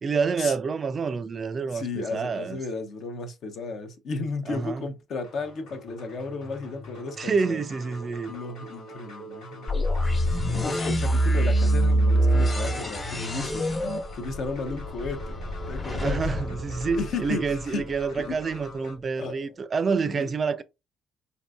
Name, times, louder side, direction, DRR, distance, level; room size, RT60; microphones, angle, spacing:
voice 1, 0.0-2.6 4.5-4.8 7.2-8.3 16.0-20.6, right 5 dB, 45° right, 0.4 m, -28 dB
voice 2, 1.7-7.6 8.3-9.7 10.6-13.7 14.1-15.4 15.7-16.2 16.9-17.8 18.2-18.4 19.2-19.5 20.1-20.3, left 3 dB, 65° left, 0.7 m, -34 dB
sound 1, 5.2-18.9, right 1 dB, 85° left, 1.5 m, -43 dB
sound 2, 9.7-17.6, right 1 dB, 35° left, 1.1 m, -25 dB
3.7 x 2.6 x 2.2 m
supercardioid pair, 65°, 0 cm